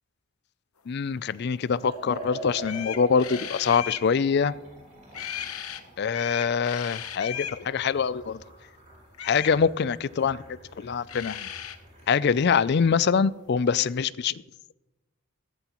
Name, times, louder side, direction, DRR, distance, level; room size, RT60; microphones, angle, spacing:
voice 1, 0.9-4.5 6.0-8.4 9.2-11.5 12.1-14.4, left 6 dB, 50° left, 18 dB, 0.4 m, -24 dB
Liquid, 1.8-13.0, right 1 dB, 35° right, 4.5 m, -45 dB
sound 1, 2.2-2.3 2.6-4.1 5.1-5.8 6.1-7.6 9.1-9.6 10.8-10.9 11.1-11.8, left 10 dB, 80° left, 0.9 m, -36 dB
15.5 x 14.0 x 3.0 m, 1.0 s
head